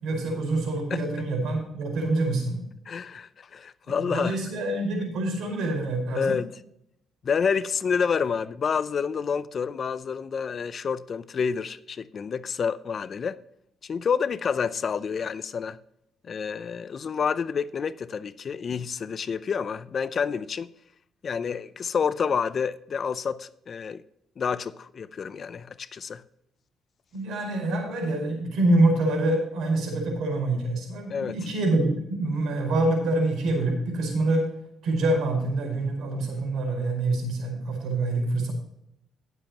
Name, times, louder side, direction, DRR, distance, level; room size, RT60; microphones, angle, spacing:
voice 1, 0.0-2.6 3.8-6.4 27.1-34.5 34.8-38.5, right 2 dB, 75° right, 4.8 m, -26 dB
voice 2, 2.9-4.4 6.2-6.5 7.2-13.4 13.8-15.8 16.3-20.7 21.2-24.0 24.4-26.2 31.1-31.4, left 6 dB, 40° left, 0.5 m, -28 dB
18.5 x 7.6 x 2.9 m
cardioid pair, 120°, 0 cm